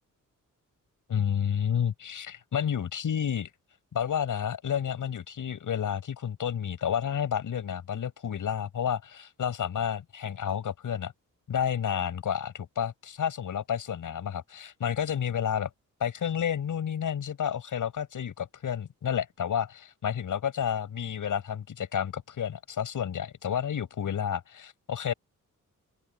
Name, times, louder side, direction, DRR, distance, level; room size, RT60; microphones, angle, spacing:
voice 1, 1.1-3.5 3.9-11.1 11.5-15.7 16.0-25.1, left 8 dB, 75° left, 7.3 m, -30 dB
open air
wide cardioid pair, 120°, 32 cm